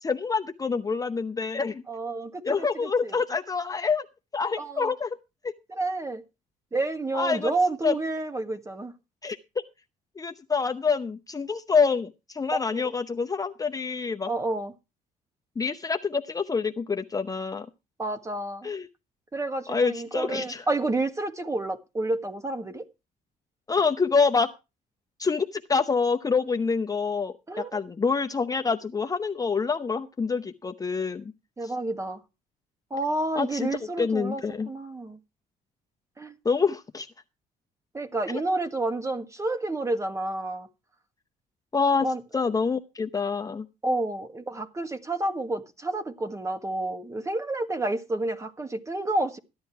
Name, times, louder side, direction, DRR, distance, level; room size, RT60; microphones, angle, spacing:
voice 1, 0.0-1.8 2.4-4.1 4.3-5.2 5.4-5.5 7.1-7.5 7.8-7.9 9.2-9.4 10.2-14.3 15.6-17.7 18.6-18.9 19.7-20.6 23.7-24.5 25.2-31.3 31.6-31.7 33.4-33.7 34.0-34.7 36.4-37.1 38.3-38.4 41.7-42.1 42.3-43.7, left 5 dB, 20° left, 0.7 m, -26 dB
voice 2, 1.9-2.4 2.8-3.2 4.6-4.9 5.7-6.2 6.7-8.9 12.5-12.8 14.3-14.7 18.0-18.7 19.3-22.8 27.5-27.8 31.6-32.2 32.9-35.2 36.2-36.4 37.9-40.7 42.0-42.2 43.8-49.4, right 2 dB, 15° right, 1.5 m, -29 dB
14.5 x 10.5 x 4.6 m
cardioid pair, 110°, 17 cm